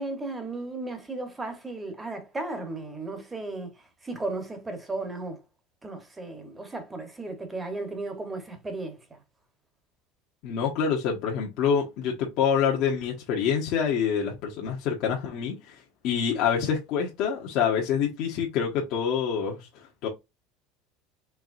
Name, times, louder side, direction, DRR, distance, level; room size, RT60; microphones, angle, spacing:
voice 1, 0.0-5.4 5.8-9.2, right 2 dB, 10° right, 1.1 m, -35 dB
voice 2, 10.4-15.8 16.0-20.1, left 7 dB, 50° left, 1.2 m, -26 dB
4.7 x 3.4 x 2.6 m
cardioid pair, 160°, 0 cm